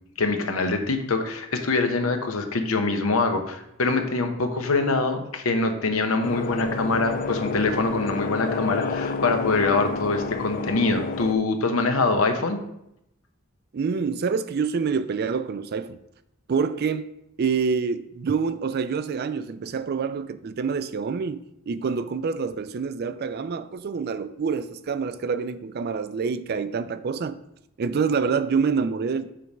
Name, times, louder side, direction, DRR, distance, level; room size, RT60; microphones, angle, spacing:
voice 1, 0.2-12.6, left 3 dB, 80° left, 0.9 m, -24 dB
sound 1, 6.2-11.3, left 4 dB, 40° left, 0.3 m, -29 dB
voice 2, 13.7-16.0 16.5-17.0 17.4-27.4 27.8-29.3, right 5 dB, 50° right, 0.4 m, -26 dB
7.6 x 3.4 x 5.3 m
head